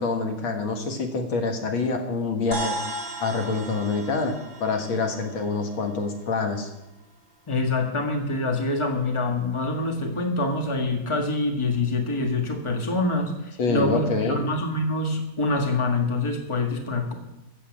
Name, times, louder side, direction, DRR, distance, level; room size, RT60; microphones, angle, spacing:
voice 1, 0.0-2.8 3.2-6.7 13.6-14.4, left 3 dB, 80° left, 4 dB, 2.3 m, -26 dB
sound 1, 2.5-7.1, right 1 dB, 40° right, 2.4 m, -36 dB
voice 2, 7.5-17.1, left 2 dB, 15° left, 3 dB, 1.6 m, -25 dB
14.0 x 7.5 x 7.4 m, 0.92 s
omnidirectional pair, 2.2 m